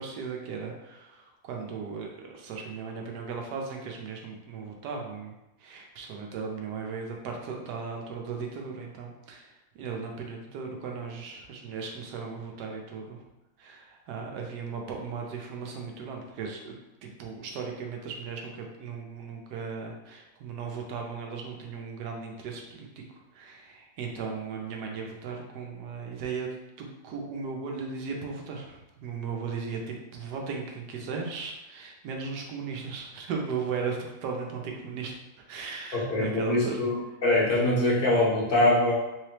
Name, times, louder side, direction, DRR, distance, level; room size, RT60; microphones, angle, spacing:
voice 1, 0.0-5.3 5.6-13.2 13.6-23.0 23.3-26.5 26.8-35.1 35.5-36.8, right 5 dB, 85° right, 1 dB, 1.3 m, -37 dB
voice 2, 35.9-38.9, left 1 dB, 40° left, -4 dB, 1.0 m, -23 dB
3.8 x 3.2 x 2.9 m, 0.99 s
omnidirectional pair, 1.7 m